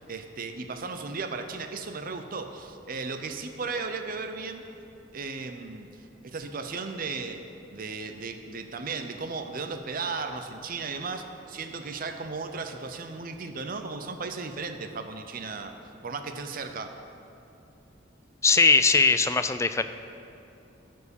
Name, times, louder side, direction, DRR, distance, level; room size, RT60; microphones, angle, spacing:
voice 1, 0.0-4.6 5.1-5.9 6.2-7.4 7.7-15.8 16.0-16.9, right 4 dB, 50° right, 7 dB, 0.7 m, -35 dB
voice 2, 18.4-19.8, left 4 dB, 15° left, 11 dB, 0.3 m, -20 dB
12.5 x 4.7 x 7.0 m, 2.7 s
head